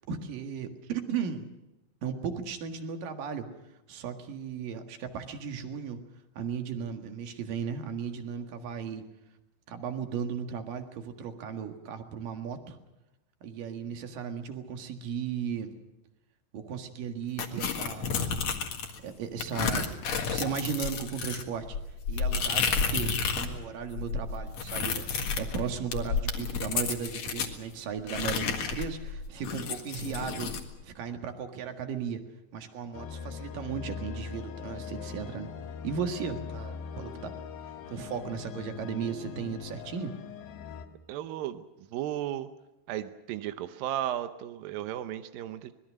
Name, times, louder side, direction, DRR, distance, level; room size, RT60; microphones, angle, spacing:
voice 1, 0.1-1.5 2.0-3.5 3.9-6.0 6.3-9.0 9.7-12.8 13.4-15.7 16.5-18.2 19.0-20.0 20.3-21.8 22.1-25.1 25.4-30.5 30.8-32.2 32.5-35.5 35.8-37.3 37.9-40.1, right 7 dB, 55° right, 6 dB, 2.9 m, -36 dB
sound 1, 17.4-19.0 19.4-23.5 23.8-27.5 28.1-30.6, left 5 dB, 55° left, 2.1 m, -31 dB
sound 2, 32.9-40.9, left 7 dB, 80° left, 4.2 m, -41 dB
voice 2, 41.1-42.5 42.9-45.7, right 12 dB, 85° right, 10 dB, 2.0 m, -35 dB
25.5 x 21.0 x 6.4 m, 0.98 s
omnidirectional pair, 5.4 m